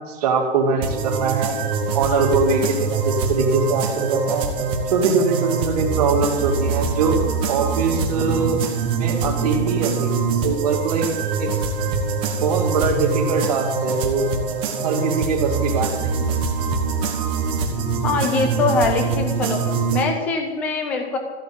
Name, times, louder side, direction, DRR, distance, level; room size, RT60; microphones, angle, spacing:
voice 1, 0.0-1.6 1.9-4.5 4.9-7.2 7.5-8.6 9.0-11.1 11.4-11.5 12.4-14.3 14.8-16.2, right 4 dB, 35° right, 2 dB, 2.6 m, -22 dB
sound 1, 0.8-20.0, right 5 dB, 15° right, 1.2 m, -24 dB
voice 2, 18.0-19.6 19.9-21.2, left 4 dB, 5° left, 4 dB, 0.5 m, -22 dB
14.0 x 8.3 x 9.0 m, 1.2 s
hypercardioid pair, 165°, 34 cm